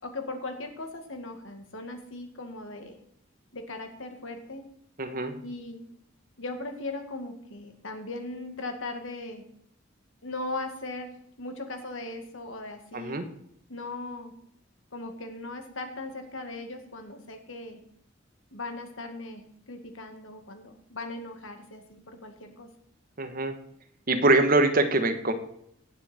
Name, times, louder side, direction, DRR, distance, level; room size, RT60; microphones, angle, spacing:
voice 1, 0.0-3.0 3.5-4.7 5.4-5.8 6.4-9.4 10.2-11.1 11.4-13.2 13.7-14.3 14.9-17.8 18.5-19.4 19.7-22.7, left 2 dB, 85° left, 5 dB, 2.1 m, -38 dB
voice 2, 5.0-5.4 12.9-13.3 23.2-23.5 24.1-25.3, right 2 dB, 45° right, 7 dB, 1.4 m, -23 dB
17.5 x 7.6 x 4.4 m, 0.72 s
head